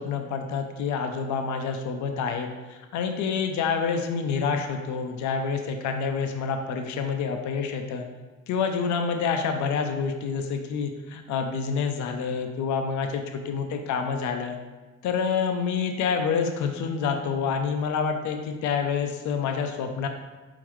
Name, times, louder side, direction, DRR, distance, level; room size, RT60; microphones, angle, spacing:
voice 1, 0.0-8.1 8.5-14.6 15.0-20.1, left 6 dB, 70° left, 5 dB, 0.5 m, -28 dB
4.1 x 3.8 x 3.1 m, 1.2 s
cardioid pair, 90°, 30 cm